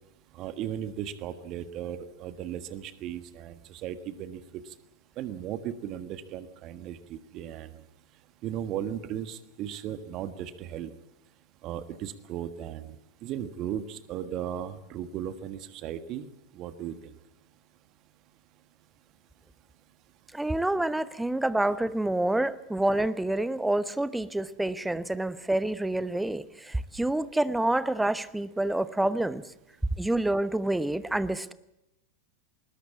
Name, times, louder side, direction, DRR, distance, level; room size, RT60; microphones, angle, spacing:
voice 1, 0.4-4.4 5.2-7.7 8.4-10.9 11.6-13.0 13.2-16.3 16.5-16.9, right 10 dB, 35° right, 12 dB, 1.5 m, -36 dB
voice 2, 20.3-29.5 30.0-31.5, right 1 dB, 5° right, 16 dB, 0.9 m, -28 dB
20.5 x 20.0 x 8.5 m, 0.88 s
figure-of-eight pair, 90°, 0 cm